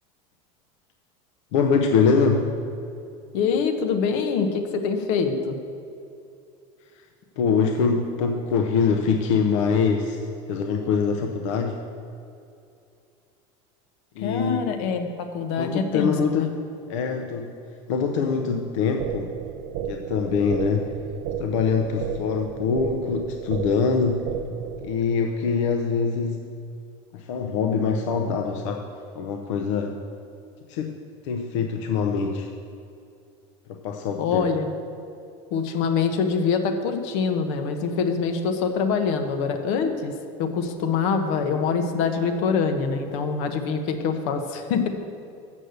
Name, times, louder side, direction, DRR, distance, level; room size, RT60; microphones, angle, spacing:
voice 1, 1.5-2.5 7.4-10.2 10.5-11.8 14.2-14.6 15.6-16.5 16.9-17.5 17.9-19.3 19.9-20.9 21.4-24.3 24.8-26.4 27.1-28.9 29.1-30.0 30.7-32.5 33.7-34.5, left 5 dB, 85° left, 3 dB, 0.8 m, -24 dB
voice 2, 3.3-5.6 14.2-16.5 34.2-34.7 35.5-40.1 40.4-44.9, left 5 dB, 65° left, 6 dB, 1.1 m, -24 dB
sound 1, 19.0-25.0, right 9 dB, 50° right, 0.6 m, -33 dB
7.4 x 6.6 x 8.0 m, 2.6 s
cardioid pair, 165°, 15 cm